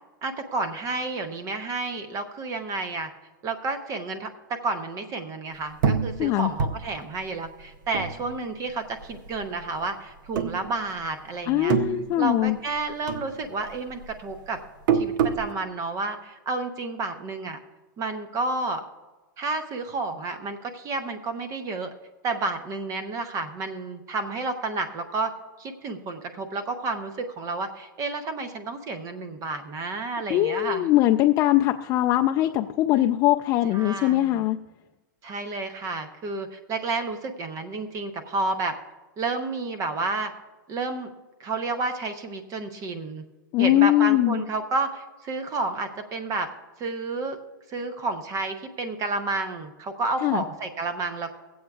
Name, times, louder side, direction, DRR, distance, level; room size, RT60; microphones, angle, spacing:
voice 1, 0.2-3.1 3.4-11.8 12.2-14.6 14.9-17.6 18.0-18.8 19.4-21.9 22.2-30.9 33.7-34.5 35.2-38.7 39.2-40.3 40.7-41.1 41.4-43.2 43.6-46.5 46.8-47.4 47.7-51.3, right 3 dB, 30° right, 8 dB, 0.8 m, -31 dB
sound 1, 5.8-8.7 9.0-9.8 10.3-11.2 11.5-12.8 13.1-15.5, right 7 dB, 70° right, 0.7 m, -27 dB
voice 2, 6.2-6.5 11.5-12.6 30.3-34.6 43.5-44.4 50.2-50.4, left 14 dB, 35° left, 6 dB, 0.4 m, -21 dB
23.5 x 7.9 x 2.4 m, 1.2 s
hypercardioid pair, 130°, 11 cm